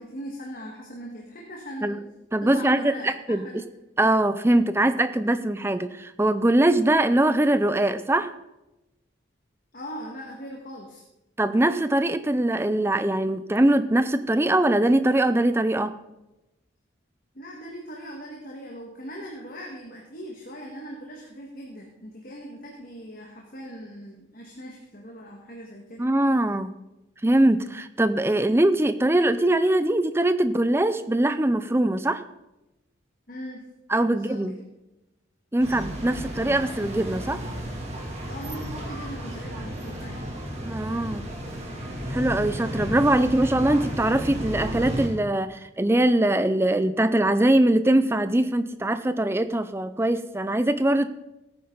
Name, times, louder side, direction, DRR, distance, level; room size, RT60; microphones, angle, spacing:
voice 1, 0.0-2.0 2.4-3.6 9.7-11.0 17.3-26.0 33.3-33.7 34.1-34.6 38.2-40.2, equal, 45° left, -1 dB, 1.8 m, -40 dB
voice 2, 2.3-3.4 4.0-8.3 11.4-15.9 26.0-26.7 27.2-32.2 33.9-34.6 35.5-37.4 40.7-41.2 42.1-51.1, right 1 dB, 10° right, 11 dB, 0.5 m, -22 dB
sound 1, 35.6-45.1, equal, 30° right, 2.4 m, -33 dB
17.0 x 9.4 x 3.9 m, 0.96 s
head